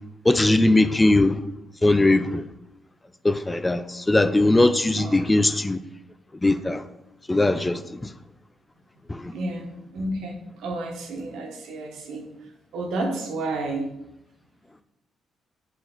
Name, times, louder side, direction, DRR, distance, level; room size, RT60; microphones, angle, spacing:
voice 1, 0.2-1.4 1.8-2.4 3.2-5.8 6.4-6.8 7.3-8.1 9.1-9.3, left 2 dB, 15° left, 0.4 m, -20 dB
voice 2, 9.3-12.3 12.7-13.9, right 2 dB, 85° right, 1.3 m, -31 dB
6.0 x 4.5 x 3.9 m
cardioid pair, 90°, 0 cm